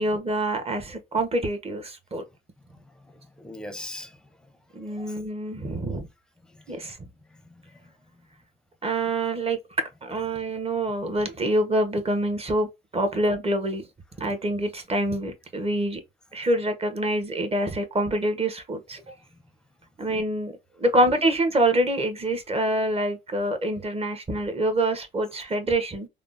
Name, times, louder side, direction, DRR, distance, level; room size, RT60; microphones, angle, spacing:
voice 1, 0.0-2.2 4.7-6.1 6.7-7.1 8.8-12.7 12.9-13.8 14.2-16.0 16.3-19.0 20.0-26.1, right 1 dB, 30° right, 0.9 m, -26 dB
voice 2, 2.7-4.2 4.9-5.1 6.5-6.8 7.5-7.9, left 1 dB, 5° left, 0.6 m, -42 dB
3.5 x 2.0 x 2.4 m
cardioid pair, 90°, 20 cm